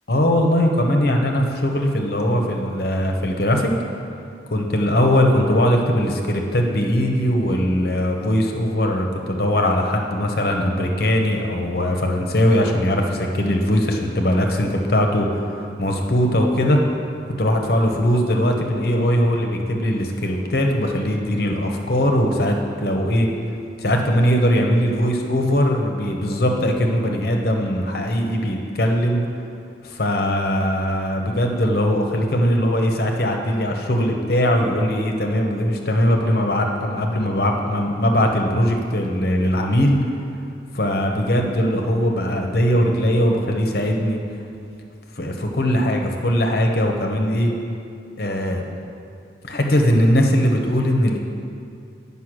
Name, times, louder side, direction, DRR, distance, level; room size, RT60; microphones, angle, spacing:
voice 1, 0.1-3.7 4.5-16.8 17.4-23.3 23.8-29.2 29.8-40.0 40.7-44.2 45.2-47.5 48.2-48.6 49.4-51.2, equal, 55° left, 2 dB, 0.9 m, -20 dB
8.2 x 5.5 x 6.1 m, 2.5 s
head